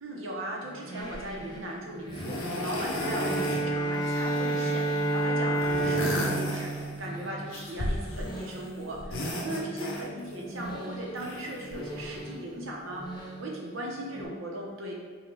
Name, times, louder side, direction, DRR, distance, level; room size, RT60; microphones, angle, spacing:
voice 1, 0.0-15.0, right 1 dB, 70° right, -2 dB, 0.9 m, -38 dB
sound 1, 0.6-14.3, right 1 dB, 20° left, 0.5 m, -43 dB
sound 2, 1.1-1.4 2.1-3.6 3.9-5.1 5.5-7.1 7.5-8.6 8.9-10.4 11.1-12.2 13.1-13.2, left 1 dB, 75° left, 0.8 m, -35 dB
Bowed string instrument, 2.9-7.8, right 2 dB, 50° left, 1.2 m, -29 dB
5.3 x 2.4 x 3.1 m, 1.5 s
head